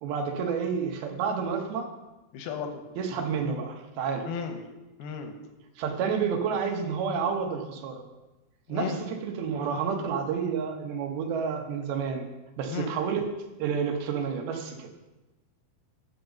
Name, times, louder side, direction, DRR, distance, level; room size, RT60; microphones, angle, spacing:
voice 1, 0.0-1.9 3.0-4.3 5.8-8.0 8.7-12.3 12.6-13.2 13.6-14.9, right 6 dB, 85° right, 4 dB, 2.9 m, -30 dB
voice 2, 2.3-2.8 4.3-4.6 5.0-5.3 8.7-9.0 12.7-12.9, left 6 dB, 90° left, 5 dB, 2.8 m, -34 dB
10.5 x 3.9 x 7.0 m, 1.1 s
omnidirectional pair, 4.3 m